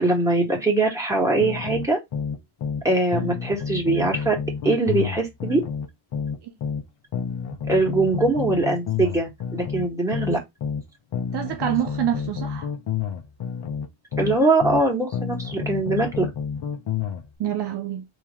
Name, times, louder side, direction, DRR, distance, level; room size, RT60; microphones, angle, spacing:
voice 1, 0.0-2.0 2.8-4.4 4.6-5.6 7.7-10.4 14.2-16.3, right 2 dB, 5° right, 2.0 m, -22 dB
sound 1, 1.4-2.9 3.1-6.8 7.1-10.8 11.1-14.8 15.1-17.2, left 7 dB, 60° left, 1.1 m, -29 dB
voice 2, 11.3-12.7 17.4-18.0, right 10 dB, 60° right, 0.7 m, -27 dB
3.6 x 3.1 x 3.0 m
cardioid pair, 110°, 46 cm